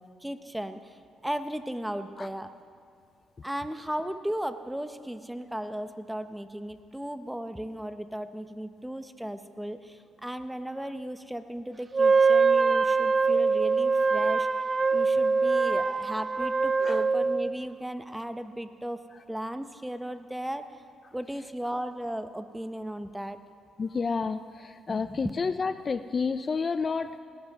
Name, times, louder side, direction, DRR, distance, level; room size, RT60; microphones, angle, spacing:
voice 1, 0.0-2.5 3.4-14.5 14.9-19.0 19.3-20.8 21.1-23.4 24.9-25.2, right 1 dB, 5° right, 10 dB, 0.7 m, -36 dB
Wind instrument woodwind instrument, 11.9-17.5, right 4 dB, 30° right, 0.4 m, -23 dB
voice 2, 23.8-27.2, left 5 dB, 35° left, 11 dB, 0.4 m, -30 dB
18.0 x 17.0 x 3.6 m, 2.3 s
cardioid pair, 90°, 0 cm